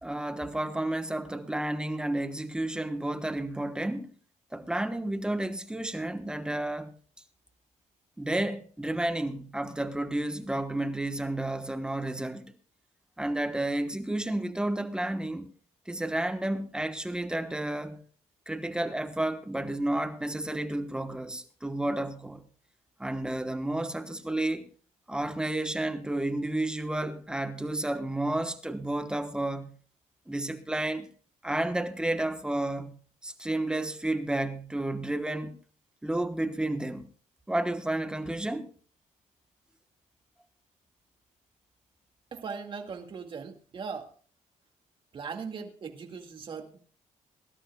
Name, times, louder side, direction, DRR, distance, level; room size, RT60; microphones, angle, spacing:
voice 1, 0.0-4.1 4.5-6.9 8.2-12.4 13.2-15.5 15.9-18.0 18.5-22.4 23.0-24.6 25.1-29.7 30.3-31.1 31.4-32.9 33.2-35.5 36.0-37.1 37.5-38.7, right 1 dB, 5° right, 1.2 m, -31 dB
voice 2, 42.3-44.1 45.1-46.8, right 5 dB, 40° right, 2.1 m, -39 dB
23.0 x 12.5 x 2.3 m
cardioid pair, 130°, 13 cm